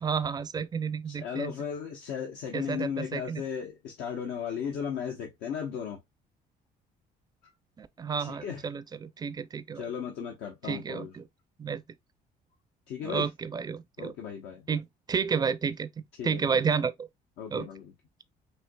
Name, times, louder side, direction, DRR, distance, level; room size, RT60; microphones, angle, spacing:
voice 1, 0.0-1.5 2.5-3.4 7.8-9.8 10.6-11.2 11.6-11.8 13.0-14.1 14.7-15.9 16.2-16.9 17.5-17.7, right 6 dB, 25° right, 0.4 m, -31 dB
voice 2, 1.1-6.0 7.4-7.5 8.2-8.6 9.7-11.1 12.9-13.3 14.0-14.7 16.2-16.6 17.4-17.9, left 7 dB, 90° left, 0.9 m, -36 dB
4.4 x 2.7 x 2.2 m
cardioid pair, 110°, 17 cm